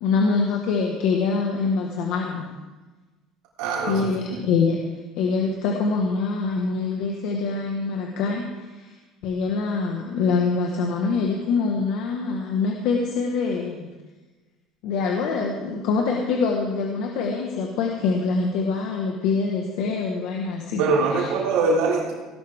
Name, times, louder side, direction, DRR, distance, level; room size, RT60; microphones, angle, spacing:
voice 1, 0.0-2.5 3.9-4.8 5.2-8.9 9.2-13.9 14.8-20.8 21.1-21.3, left 4 dB, 60° left, 1 dB, 1.5 m, -24 dB
voice 2, 3.6-4.0 20.8-22.1, right 3 dB, 90° right, -4 dB, 3.6 m, -22 dB
17.5 x 12.0 x 3.6 m, 1.2 s
cardioid pair, 170°, 0 cm